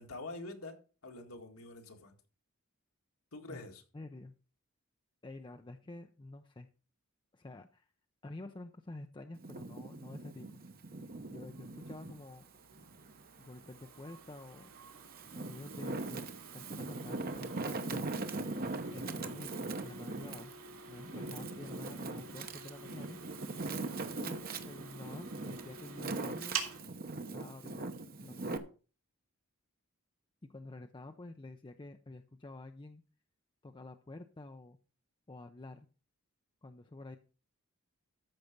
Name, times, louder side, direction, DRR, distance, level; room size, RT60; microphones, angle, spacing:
voice 1, 0.0-2.1 3.3-3.8 21.0-21.5, left 2 dB, 80° left, 3 dB, 2.1 m, -46 dB
voice 2, 3.9-4.3 5.2-6.7 7.3-7.9 8.2-10.6 11.3-12.4 13.4-14.7 15.3-16.3 16.5-18.3 18.9-20.5 20.9-23.2 24.2-26.6 27.3-27.9 28.2-28.7 30.4-33.0 33.6-34.8 35.3-35.9 36.6-37.2, left 2 dB, 20° left, 7 dB, 0.5 m, -49 dB
Wind, 9.4-12.2 12.7-14.0 14.6-28.6, right 3 dB, 45° right, 0.9 m, -41 dB
sound 1, 11.1-26.8, right 5 dB, 75° right, 2.5 m, -49 dB
13.5 x 5.7 x 5.2 m, 0.37 s
head